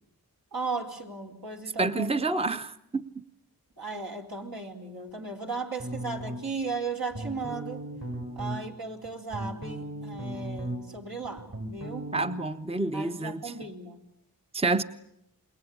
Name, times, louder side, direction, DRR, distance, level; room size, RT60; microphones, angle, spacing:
voice 1, 0.5-2.2 3.8-7.9 8.4-12.1 12.9-14.0, right 4 dB, 65° right, 4.5 m, -36 dB
voice 2, 1.8-3.1 12.1-13.5 14.5-14.8, right 3 dB, 15° right, 0.9 m, -28 dB
sound 1, 5.8-6.6 7.1-8.6 9.1-11.0 11.2-12.3, right 1 dB, 45° right, 7.4 m, -36 dB
27.5 x 21.5 x 8.7 m
wide cardioid pair, 50°, 38 cm